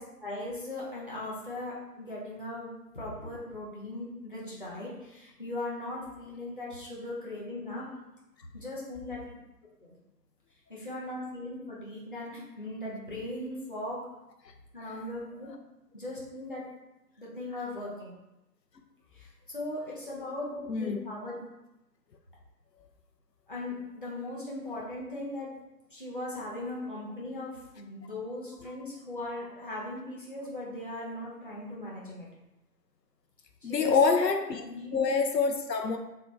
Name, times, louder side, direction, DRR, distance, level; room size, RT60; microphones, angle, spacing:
voice 1, 0.0-2.7 2.9-7.9 8.5-9.2 9.8-9.9 10.7-14.0 14.7-15.5 15.9-16.6 17.2-18.1 19.2-21.4 23.5-25.5 25.9-32.3 33.6-34.2 34.6-34.9, left 1 dB, 35° left, -6 dB, 0.7 m, -38 dB
voice 2, 20.7-21.0 28.6-28.7 29.4-29.5 33.6-34.6 34.9-36.0, left 5 dB, 80° left, 4 dB, 0.7 m, -26 dB
3.8 x 2.3 x 4.3 m, 0.94 s
figure-of-eight pair, 170°, 48 cm